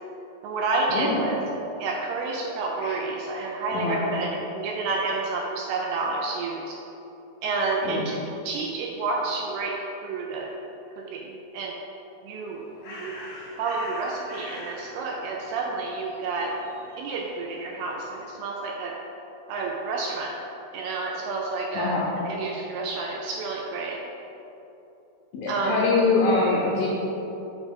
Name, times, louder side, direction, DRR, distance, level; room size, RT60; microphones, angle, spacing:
voice 1, 0.4-1.4 1.8-6.8 7.4-8.2 8.4-10.6 11.0-11.8 12.2-13.2 13.6-16.6 17.0-19.0 19.5-20.4 20.7-24.0 25.5-25.9, right 3 dB, 85° right, 0 dB, 2.3 m, -30 dB
Bird, 12.3-18.4, left 1 dB, 60° left, 2.3 m, -44 dB
voice 2, 21.7-22.1 25.3-26.9, left 3 dB, 80° left, -4 dB, 2.1 m, -24 dB
6.2 x 5.3 x 5.1 m, 3.0 s
omnidirectional pair, 5.0 m